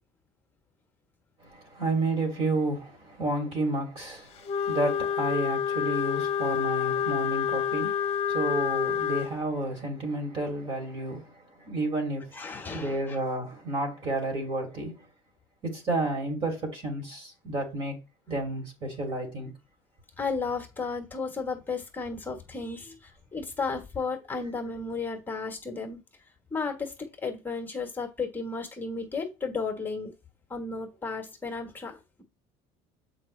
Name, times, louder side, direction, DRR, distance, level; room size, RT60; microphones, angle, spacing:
voice 1, 1.4-15.1 15.6-18.0 18.3-19.5, right 2 dB, 45° right, 2.8 m, -31 dB
Wind instrument woodwind instrument, 4.4-9.3, left 8 dB, 50° left, 0.8 m, -28 dB
voice 2, 12.3-13.2 20.2-26.0 26.5-26.9 27.2-30.1 30.5-32.2, left 4 dB, 15° left, 1.3 m, -34 dB
7.4 x 4.8 x 3.2 m
cardioid pair, 130°, 13 cm